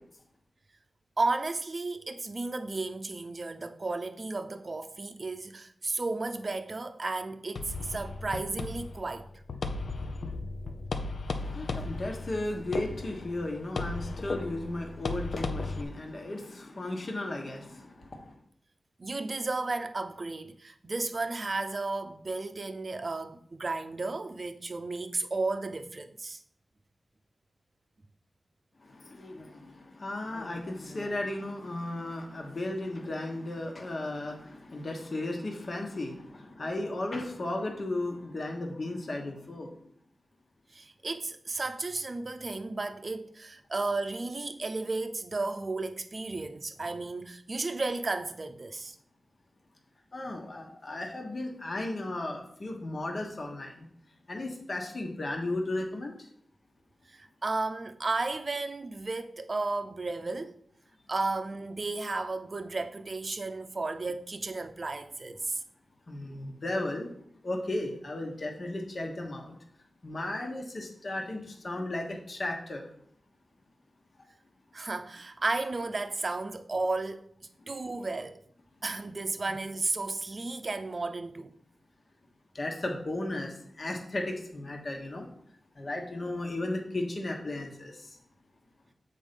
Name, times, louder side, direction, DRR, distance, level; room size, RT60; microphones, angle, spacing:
voice 1, 1.2-9.3 19.0-26.4 40.7-49.0 57.1-60.6 61.1-65.6 74.7-77.3 77.7-78.4 78.8-81.5, right 3 dB, 50° right, 0.6 m, -33 dB
sound 1, 7.6-15.8, left 3 dB, 80° left, 0.6 m, -36 dB
voice 2, 11.3-18.2 28.9-39.7 50.1-53.9 54.3-56.1 66.1-67.1 67.4-69.5 70.0-72.8 82.5-85.3 85.8-88.1, left 2 dB, 50° left, 1.3 m, -35 dB
7.3 x 4.3 x 5.2 m
cardioid pair, 65°, 0 cm